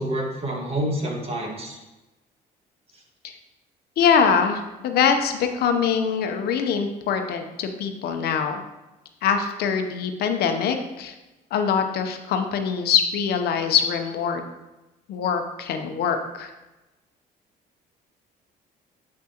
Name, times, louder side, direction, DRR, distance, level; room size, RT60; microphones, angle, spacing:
voice 1, 0.0-1.8, right 1 dB, 35° right, 0 dB, 1.6 m, -28 dB
voice 2, 4.0-8.6 9.2-11.1 11.5-14.4 15.1-16.5, left 6 dB, 70° left, 6 dB, 0.7 m, -23 dB
7.5 x 6.0 x 2.9 m, 1.0 s
cardioid pair, 110°, 17 cm